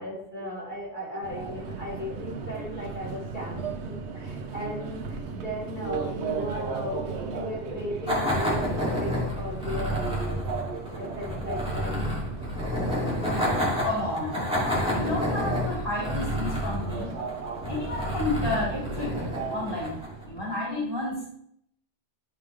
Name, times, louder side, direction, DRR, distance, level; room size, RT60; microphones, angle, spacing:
voice 1, 0.0-10.0 10.3-10.4 10.9-12.1, left 1 dB, 45° left, -8 dB, 3.4 m, -36 dB
voice 2, 1.1-1.6 13.3-14.4 14.9-17.1 17.7-21.3, left 2 dB, 20° left, -8 dB, 3.4 m, -32 dB
Subway metro underground, 1.2-20.5, right 5 dB, 75° right, 1.1 m, -36 dB
sound 1, 8.1-20.2, left 1 dB, 5° right, 2.4 m, -29 dB
11.5 x 5.4 x 3.3 m, 0.69 s
omnidirectional pair, 1.2 m